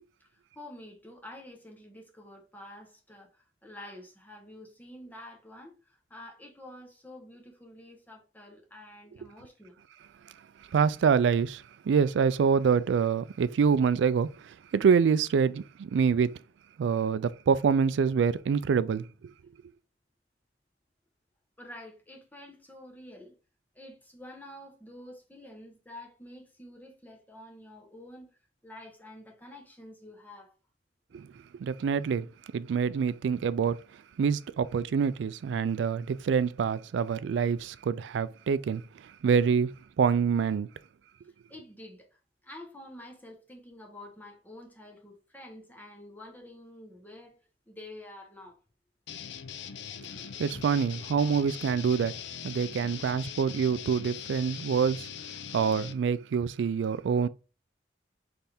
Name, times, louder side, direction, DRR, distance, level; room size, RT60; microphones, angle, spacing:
voice 1, 0.2-9.8 21.6-23.4 23.7-30.5 31.1-31.2 41.5-47.4 47.7-48.6, left 1 dB, 10° left, 0.9 m, -48 dB
voice 2, 10.7-16.3 16.8-19.1 31.1-31.3 31.6-32.3 32.5-33.8 34.2-38.8 39.2-40.7 50.4-52.1 52.4-55.1 55.5-57.3, right 6 dB, 80° right, 0.3 m, -26 dB
sound 1, 49.1-55.9, left 8 dB, 75° left, 0.4 m, -41 dB
4.2 x 3.4 x 3.4 m
head